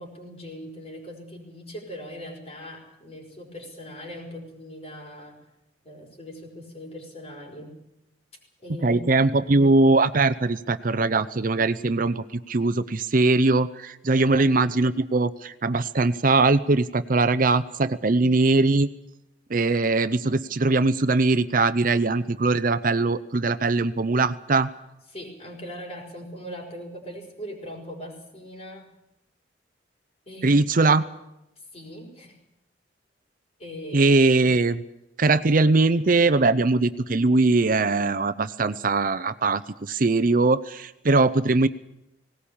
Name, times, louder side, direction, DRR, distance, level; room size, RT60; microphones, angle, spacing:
voice 1, 0.0-5.5 5.8-7.8 8.6-9.3 14.1-14.5 25.1-28.9 30.3-30.7 31.7-32.4 33.6-34.2, equal, 35° left, 2 dB, 5.5 m, -40 dB
voice 2, 8.8-18.9 19.5-24.7 30.4-31.0 33.9-34.8 35.2-41.7, right 3 dB, 50° right, 14 dB, 0.7 m, -21 dB
19.0 x 18.5 x 8.8 m, 0.86 s
head